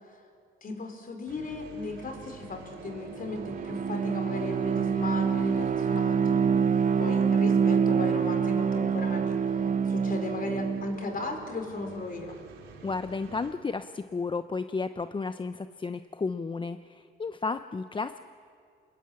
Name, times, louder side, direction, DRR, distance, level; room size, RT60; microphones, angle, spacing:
voice 1, 0.6-6.7 7.0-9.4 9.8-12.4, left 3 dB, 45° left, 5 dB, 4.7 m, -36 dB
sound 1, 1.3-13.5, right 4 dB, 90° right, 3.2 m, -45 dB
Bowed string instrument, 3.3-11.0, right 6 dB, 40° right, 1.0 m, -26 dB
voice 2, 12.8-18.2, left 4 dB, 25° left, 11 dB, 0.7 m, -33 dB
27.0 x 20.5 x 8.7 m, 2.3 s
cardioid pair, 90°, 20 cm